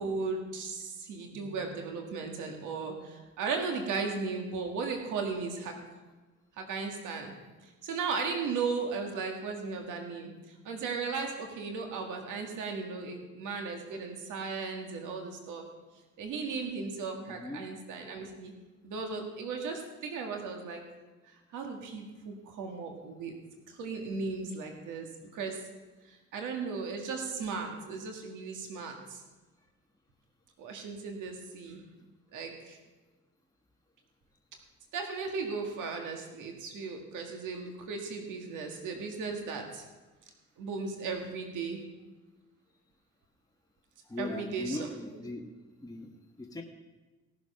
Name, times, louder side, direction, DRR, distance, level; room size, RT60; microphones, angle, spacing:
voice 1, 0.0-5.7 6.6-7.3 7.8-10.3 10.7-15.6 16.2-18.5 18.8-20.8 21.5-23.3 23.7-25.1 25.3-25.6 26.1-29.2 30.6-31.8 32.3-32.8 34.9-39.8 40.6-41.8 44.2-44.9, right 4 dB, 90° right, 2 dB, 2.0 m, -36 dB
voice 2, 17.3-17.6 44.1-45.4 45.8-46.1 46.4-46.6, left 2 dB, 10° left, 1 dB, 1.3 m, -39 dB
17.0 x 7.1 x 5.6 m, 1.2 s
cardioid pair, 90°, 30 cm